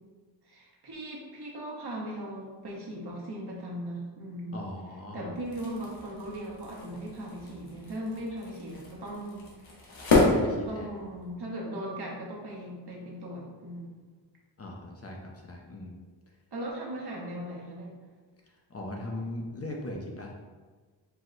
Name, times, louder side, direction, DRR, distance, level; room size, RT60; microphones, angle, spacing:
voice 1, 0.5-4.6 5.1-9.9 10.7-13.9 16.5-17.9, right 1 dB, 60° right, -3 dB, 1.1 m, -38 dB
voice 2, 4.5-5.3 10.1-10.9 14.6-16.0 18.7-20.3, left 1 dB, 35° left, 0 dB, 0.5 m, -39 dB
sound 1, 5.3-11.3, left 3 dB, 85° left, 1.0 m, -30 dB
4.6 x 2.2 x 3.8 m, 1.4 s
wide cardioid pair, 110°, 44 cm